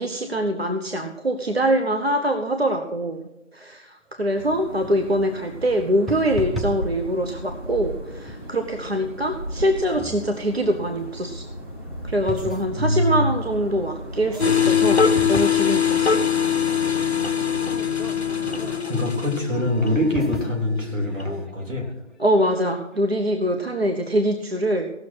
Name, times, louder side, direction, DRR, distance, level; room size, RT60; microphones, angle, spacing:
voice 1, 0.0-3.2 3.5-11.5 12.0-16.3 22.2-24.9, right 1 dB, 50° right, 4 dB, 0.9 m, -24 dB
sound 1, 4.1-4.2 4.4-5.2 5.8-7.9 8.3-8.6 8.9-9.1 9.6-10.5 11.0-11.1 11.5-13.8 14.1-23.6, left 1 dB, ahead, 0.5 m, -39 dB
sound 2, 4.3-18.8, equal, 20° right, 1.6 m, -35 dB
voice 2, 12.8-13.3 18.9-21.9, left 1 dB, 75° right, 1 dB, 3.4 m, -23 dB
sound 3, 14.4-21.3, left 7 dB, 55° left, 0.7 m, -23 dB
16.5 x 6.5 x 6.1 m, 0.94 s
figure-of-eight pair, 165°, 39 cm